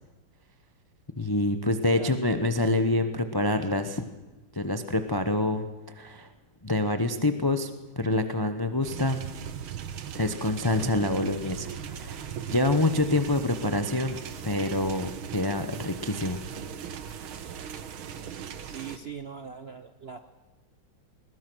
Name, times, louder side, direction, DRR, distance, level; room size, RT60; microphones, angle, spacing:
voice 1, 1.2-4.0 4.5-5.7 6.0-6.3 6.6-7.7 8.0-9.2 10.1-14.2 14.4-16.4, left 2 dB, 35° left, 8 dB, 0.3 m, -26 dB
sound 1, 8.8-19.0, right 8 dB, 80° right, 2.0 m, -39 dB
voice 2, 18.2-20.2, right 6 dB, 55° right, 8 dB, 0.7 m, -41 dB
21.0 x 20.5 x 6.2 m, 1.2 s
omnidirectional pair, 2.2 m